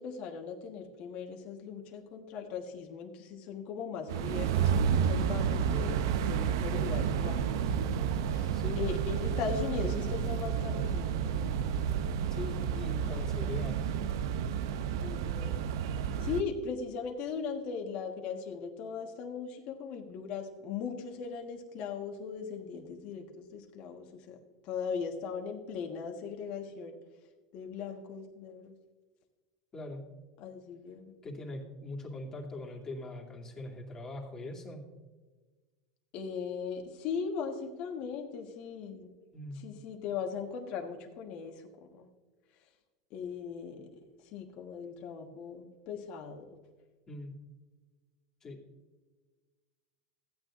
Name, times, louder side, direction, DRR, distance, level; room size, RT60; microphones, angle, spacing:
voice 1, 0.0-6.0 6.3-11.6 15.0-15.7 16.0-24.4 24.6-27.0 27.5-28.7 30.4-31.1 36.1-39.1 39.5-42.1 43.1-44.0 44.3-46.6, left 6 dB, 55° left, 3 dB, 1.3 m, -39 dB
sound 1, 4.1-16.4, right 7 dB, 75° right, 0.6 m, -31 dB
voice 2, 8.5-8.9 12.3-13.9 29.7-30.0 31.2-34.8 39.3-39.6 47.1-47.3 48.4-48.6, left 2 dB, 25° left, -1 dB, 2.4 m, -42 dB
15.0 x 9.2 x 2.5 m, 1.3 s
supercardioid pair, 115°, 2 cm